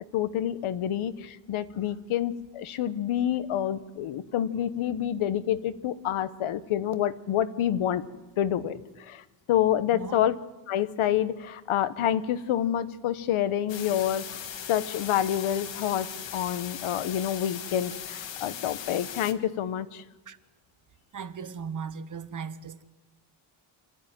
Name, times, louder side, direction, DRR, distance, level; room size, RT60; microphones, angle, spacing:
voice 1, 0.1-8.0 8.4-9.2 9.5-10.4 10.7-14.2 14.7-20.0, left 11 dB, 90° left, 1.1 m, -28 dB
voice 2, 9.9-10.2 20.3-20.4 21.1-22.8, right 6 dB, 40° right, 1.1 m, -37 dB
sound 1, 13.7-19.3, left 9 dB, 65° left, 1.6 m, -39 dB
25.5 x 13.5 x 9.0 m
cardioid pair, 130°, 48 cm